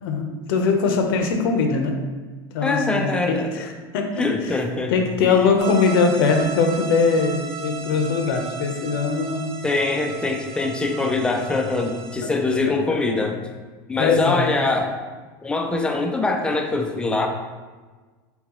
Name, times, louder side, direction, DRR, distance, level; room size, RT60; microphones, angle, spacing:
voice 1, 0.0-2.0 2.5-4.3 4.9-9.6 12.2-12.3 12.7-13.0 14.0-14.5, left 4 dB, 75° left, 4 dB, 0.7 m, -21 dB
voice 2, 2.6-3.5 4.2-5.0 5.3-5.4 9.6-13.4 13.9-14.9 15.4-17.3, left 3 dB, 10° left, 4 dB, 0.4 m, -23 dB
sound 1, 5.6-12.2, right 6 dB, 80° right, 0.9 m, -35 dB
3.8 x 3.8 x 3.0 m, 1.4 s
supercardioid pair, 135°, 12 cm